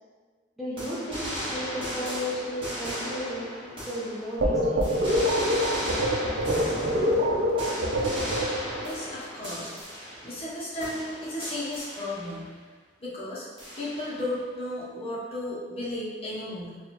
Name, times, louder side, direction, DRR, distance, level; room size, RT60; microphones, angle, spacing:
voice 1, 0.6-4.9 5.8-6.0, equal, ahead, -9 dB, 0.6 m, -34 dB
sound 1, 0.8-4.5 4.8-10.5 10.8-12.5 13.6-14.3, equal, 30° right, 1.0 m, -35 dB
sound 2, 4.4-8.8, equal, 75° right, 0.6 m, -25 dB
voice 2, 8.8-9.8 10.2-12.5 13.0-13.5 13.8-16.7, left 1 dB, 35° left, -6 dB, 0.8 m, -34 dB
3.0 x 2.3 x 4.2 m, 1.4 s
head